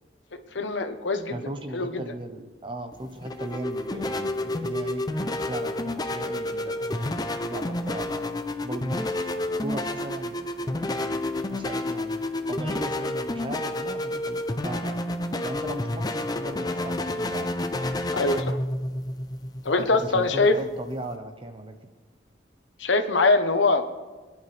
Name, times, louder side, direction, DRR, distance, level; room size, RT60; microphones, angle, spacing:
voice 1, 0.5-1.4 1.7-2.0 15.3-15.4 18.1-18.6 19.6-20.6 22.8-24.0, left 3 dB, 80° left, 7 dB, 1.1 m, -23 dB
voice 2, 1.3-8.4 8.6-9.0 9.6-12.2 12.5-15.0 15.4-17.5 20.0-21.8, right 1 dB, 25° right, 6 dB, 1.1 m, -37 dB
sound 1, 2.9-21.2, left 1 dB, 20° left, 0.6 m, -30 dB
25.5 x 10.5 x 3.4 m, 1.3 s
head